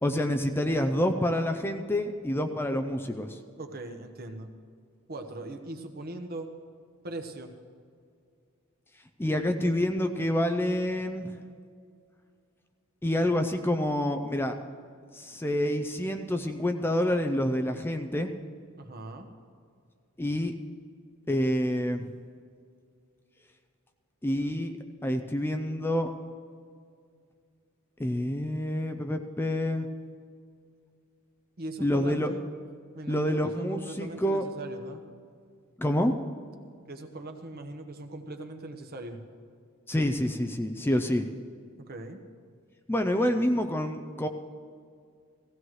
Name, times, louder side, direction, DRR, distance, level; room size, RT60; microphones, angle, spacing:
voice 1, 0.0-3.4 9.2-11.3 13.0-14.6 15.1-18.3 20.2-20.5 21.3-22.1 24.2-24.7 25.0-26.1 28.0-29.9 31.8-32.3 33.1-34.4 35.8-36.2 39.9-41.3 42.9-44.3, left 1 dB, 10° left, 7 dB, 0.5 m, -27 dB
voice 2, 3.6-4.5 5.1-6.5 7.0-7.5 18.8-19.3 31.6-32.4 32.9-35.0 36.9-39.2 41.9-42.2, right 2 dB, 45° right, 5 dB, 1.1 m, -40 dB
17.0 x 15.5 x 3.2 m, 2.2 s
head